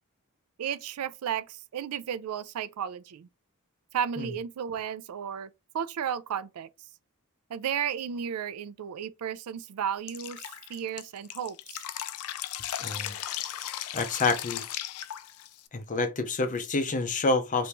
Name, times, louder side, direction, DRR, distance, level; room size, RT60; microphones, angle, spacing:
voice 1, 0.6-3.3 3.9-5.5 5.7-6.7 7.5-10.4 10.7-11.8, right 8 dB, 85° right, 0.4 m, -33 dB
Drip, 10.1-15.7, left 12 dB, 85° left, 0.4 m, -36 dB
voice 2, 12.8-13.1 13.9-14.7 15.7-17.7, left 3 dB, 35° left, 0.6 m, -28 dB
3.4 x 2.6 x 2.9 m
head